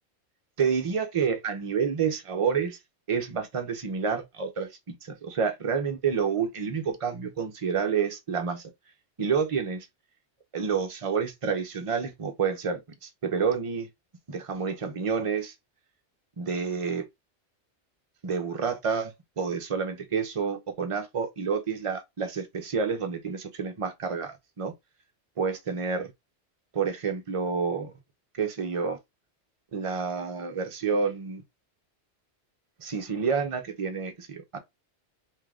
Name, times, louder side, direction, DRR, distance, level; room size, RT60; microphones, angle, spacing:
voice 1, 0.6-2.8 3.1-4.7 5.0-8.6 9.2-9.9 10.5-13.9 14.3-15.5 16.4-17.0 18.2-24.7 25.4-26.1 26.7-27.9 28.4-29.0 29.7-31.4 32.8-34.6, right 6 dB, 35° right, 0.7 m, -29 dB
3.6 x 2.7 x 3.4 m
omnidirectional pair, 1.1 m